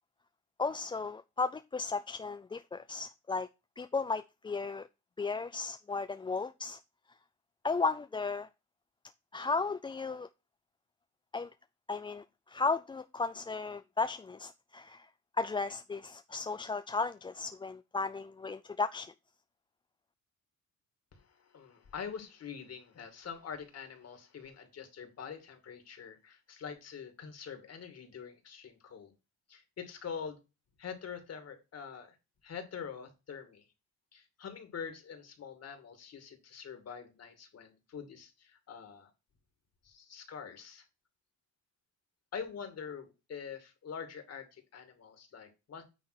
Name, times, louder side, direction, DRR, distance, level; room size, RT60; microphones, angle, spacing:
voice 1, 0.6-3.5 3.8-4.9 5.2-6.8 7.6-8.5 9.3-10.3 11.3-11.5 11.9-15.1 15.4-19.1, left 4 dB, 15° left, 0.4 m, -35 dB
voice 2, 21.1-29.1 29.5-30.4 30.8-32.2 32.4-33.7 34.1-39.1 39.8-40.9 42.3-45.8, left 6 dB, 55° left, 2.4 m, -45 dB
9.3 x 3.4 x 6.1 m
cardioid pair, 90°, 30 cm